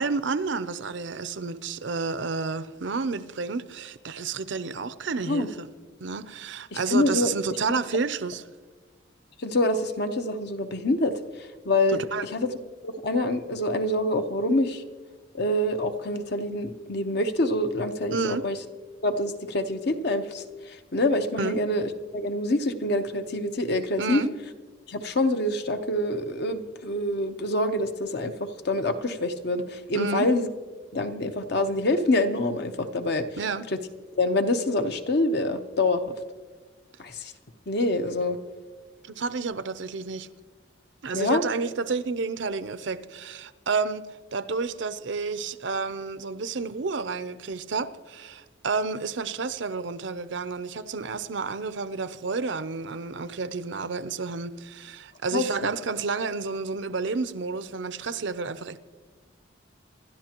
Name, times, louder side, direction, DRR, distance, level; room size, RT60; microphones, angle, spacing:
voice 1, 0.0-5.7 6.0-8.4 11.9-12.3 18.1-18.4 21.4-21.6 24.0-24.3 29.9-30.3 33.4-33.7 39.1-40.3 41.0-44.1 44.3-58.8, right 4 dB, 65° right, 0.6 m, -30 dB
voice 2, 6.7-7.3 9.4-11.2 11.6-12.5 12.8-14.8 15.3-18.6 19.0-24.2 24.9-30.5 30.9-33.2 34.2-36.2 37.0-37.3 37.7-38.4 41.1-41.4 55.3-55.5, left 1 dB, 55° left, 0.9 m, -26 dB
26.0 x 12.5 x 3.0 m
head